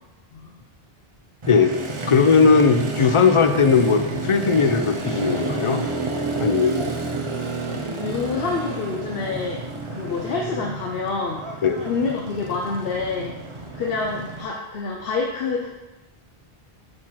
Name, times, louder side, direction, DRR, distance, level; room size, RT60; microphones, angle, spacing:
Motorcycle, 1.4-14.4, right 2 dB, 35° right, 0.7 m, -30 dB
voice 1, 2.1-5.8 6.4-6.8 11.6-11.9, left 5 dB, 50° left, 7 dB, 0.3 m, -18 dB
voice 2, 8.0-9.6 9.9-13.3 13.7-15.7, left 4 dB, 70° left, 0 dB, 0.9 m, -27 dB
5.7 x 4.4 x 4.7 m, 1.0 s
omnidirectional pair, 1.0 m